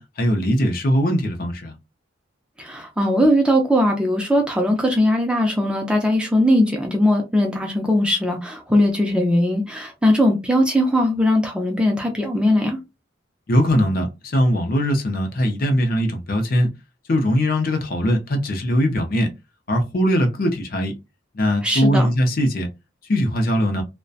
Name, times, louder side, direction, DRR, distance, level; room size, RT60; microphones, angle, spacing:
voice 1, 0.0-1.7 13.5-16.7 17.1-19.3 19.7-20.9 21.3-22.7 23.0-23.8, equal, 45° left, 0.5 m, -20 dB
voice 2, 2.6-12.8 21.6-22.1, left 1 dB, 5° right, 0.4 m, -19 dB
2.6 x 2.1 x 2.3 m
head